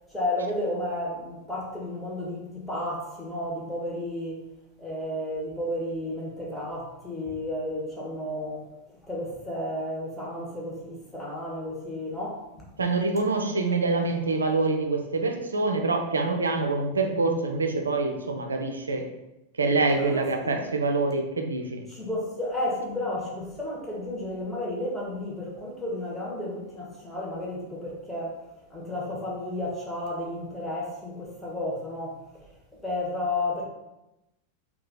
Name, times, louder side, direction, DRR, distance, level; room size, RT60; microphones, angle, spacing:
voice 1, 0.1-4.4 4.8-8.7 9.1-12.7 13.9-14.0 19.9-20.6 21.9-28.4 28.7-32.5 32.8-33.6, left 1 dB, ahead, -5 dB, 1.1 m, -32 dB
voice 2, 12.8-19.1 19.6-21.8, right 3 dB, 75° right, 4 dB, 0.4 m, -25 dB
2.8 x 2.3 x 3.8 m, 0.92 s
figure-of-eight pair, 90°, 0 cm